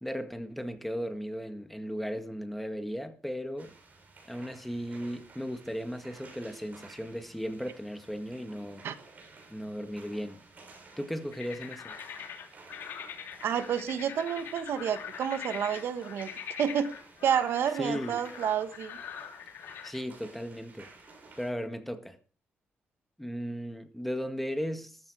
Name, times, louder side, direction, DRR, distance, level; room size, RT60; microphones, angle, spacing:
voice 1, 0.0-3.7 4.3-8.9 9.5-10.4 11.0-11.9 17.8-18.2 19.8-20.9 21.4-22.2 23.2-25.0, equal, 5° left, 1.7 m, -36 dB
sound 1, 3.6-21.5, right 3 dB, 45° right, 7.2 m, -54 dB
sound 2, 11.3-20.0, left 8 dB, 85° left, 2.9 m, -43 dB
voice 2, 13.4-16.3 16.6-17.0 17.2-19.0, right 8 dB, 80° right, 1.3 m, -29 dB
14.0 x 12.0 x 4.9 m
cardioid pair, 100°, 4 cm